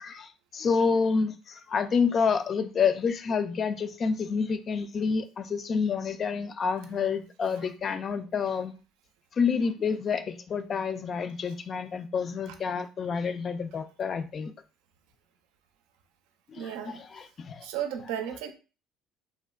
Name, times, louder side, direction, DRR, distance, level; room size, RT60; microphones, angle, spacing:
voice 1, 0.0-8.7 9.4-14.5 16.5-17.7, left 5 dB, 40° left, 9 dB, 0.4 m, -28 dB
voice 2, 16.6-17.0 17.6-18.5, right 9 dB, 85° right, 7 dB, 0.4 m, -34 dB
3.3 x 2.1 x 2.3 m, 0.33 s
supercardioid pair, 85°, 0 cm